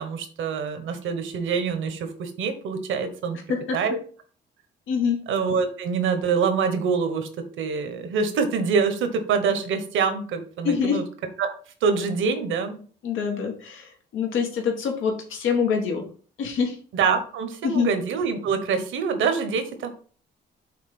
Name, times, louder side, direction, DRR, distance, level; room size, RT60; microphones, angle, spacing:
voice 1, 0.0-3.4 3.7-4.0 5.3-7.3 7.6-11.0 11.4-11.5 11.8-12.8 16.9-19.9, right 5 dB, 80° right, 7 dB, 1.3 m, -25 dB
voice 2, 4.9-5.2 10.6-11.0 13.0-16.0 16.4-16.7 17.6-17.9, left 6 dB, 85° left, 2 dB, 1.7 m, -25 dB
5.9 x 3.7 x 6.0 m, 0.43 s
cardioid pair, 90°, 20 cm